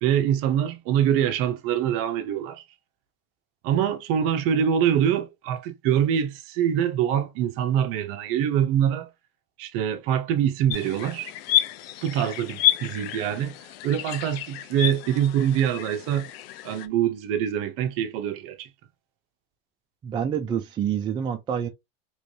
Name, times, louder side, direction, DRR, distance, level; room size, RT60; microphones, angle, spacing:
voice 1, 0.0-2.6 3.6-9.1 9.6-11.3 12.0-13.6 13.8-16.3 16.6-18.7, right 9 dB, 50° right, 0.7 m, -24 dB
sound 1, 10.7-16.9, left 13 dB, 85° left, 0.6 m, -29 dB
voice 2, 20.0-21.7, right 8 dB, 15° right, 0.3 m, -27 dB
3.2 x 3.0 x 2.7 m
supercardioid pair, 145°, 29 cm